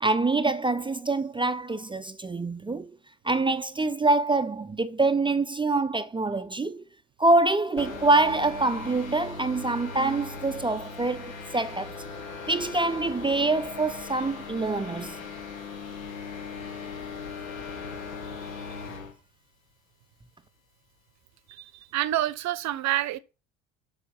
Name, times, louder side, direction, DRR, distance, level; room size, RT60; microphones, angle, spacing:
voice 1, 0.0-2.9 3.2-6.8 7.2-12.0 12.5-15.2, right 2 dB, 10° right, 0.5 m, -25 dB
sound 1, 7.8-19.1, left 5 dB, 85° left, 1.4 m, -39 dB
voice 2, 21.5-23.2, right 13 dB, 45° right, 0.8 m, -28 dB
6.8 x 4.9 x 6.0 m
hypercardioid pair, 60°, 40 cm